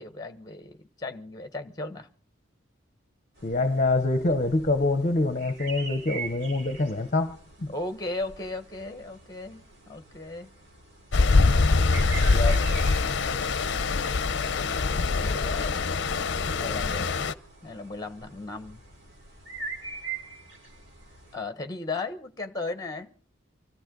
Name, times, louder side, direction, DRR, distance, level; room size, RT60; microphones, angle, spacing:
voice 1, 0.0-2.1 7.7-10.5 11.9-13.1 14.8-16.0 16.5-17.2 17.6-18.8 21.3-23.1, left 2 dB, 20° left, 1.3 m, -36 dB
sound 1, 3.3-21.4, right 4 dB, 60° right, 4.0 m, -44 dB
voice 2, 3.4-7.7, left 2 dB, 35° left, 0.9 m, -25 dB
Stream, 11.1-17.3, left 3 dB, 60° left, 0.7 m, -24 dB
25.0 x 14.5 x 3.9 m
head